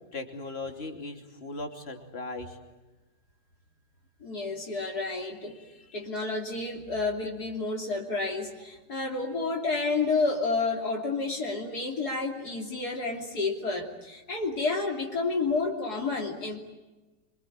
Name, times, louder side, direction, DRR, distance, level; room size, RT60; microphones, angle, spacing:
voice 1, 0.1-2.6 5.6-6.0, left 2 dB, 35° left, 4 dB, 3.1 m, -38 dB
voice 2, 4.2-5.6 5.9-16.6, left 3 dB, 60° left, 0 dB, 3.5 m, -30 dB
27.0 x 25.0 x 8.9 m, 1.1 s
omnidirectional pair, 1.9 m